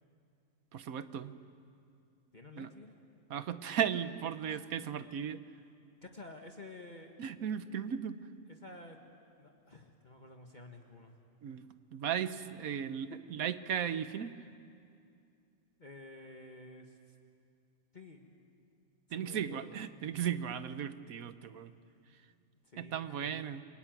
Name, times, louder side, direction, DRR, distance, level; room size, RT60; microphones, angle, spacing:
voice 1, 0.7-1.3 2.6-2.7 3.3-5.4 7.2-8.2 11.4-11.7 11.9-14.3 19.1-21.7 22.8-23.6, right 8 dB, 90° right, 12 dB, 1.4 m, -36 dB
voice 2, 2.3-3.0 4.5-4.7 6.0-7.2 8.5-9.0 9.4-11.2 15.8-17.0 17.9-18.3 19.1-19.8 22.6-23.4, left 2 dB, 35° left, 2 dB, 1.7 m, -51 dB
28.5 x 22.0 x 9.2 m, 2.5 s
omnidirectional pair, 1.4 m